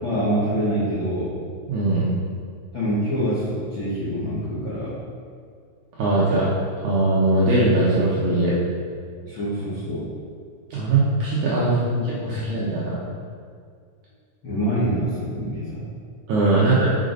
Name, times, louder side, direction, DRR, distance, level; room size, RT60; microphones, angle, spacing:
voice 1, 0.0-1.3 2.7-5.0 9.2-10.1 11.6-11.9 12.2-12.6 14.4-15.9 16.6-16.7, equal, 65° left, -12 dB, 1.2 m, -26 dB
voice 2, 1.7-2.1 6.0-6.5 6.8-8.6 10.7-11.7 12.3-13.0 16.3-16.9, right 2 dB, 75° right, -7 dB, 1.8 m, -20 dB
6.4 x 4.4 x 3.9 m, 2.1 s
omnidirectional pair, 4.4 m